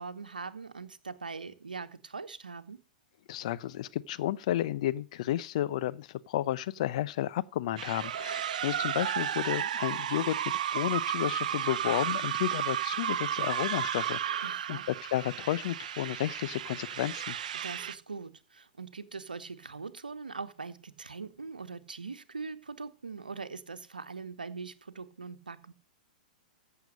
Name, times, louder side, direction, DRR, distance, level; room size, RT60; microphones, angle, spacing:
voice 1, 0.0-2.8 14.4-14.9 17.5-25.7, right 4 dB, 80° right, 1.2 m, -42 dB
voice 2, 3.3-10.4 10.7-17.4, left 13 dB, 50° left, 0.7 m, -32 dB
sound 1, 7.8-17.9, right 9 dB, 60° right, 0.7 m, -33 dB
15.5 x 7.0 x 6.6 m
figure-of-eight pair, 105°, 5 cm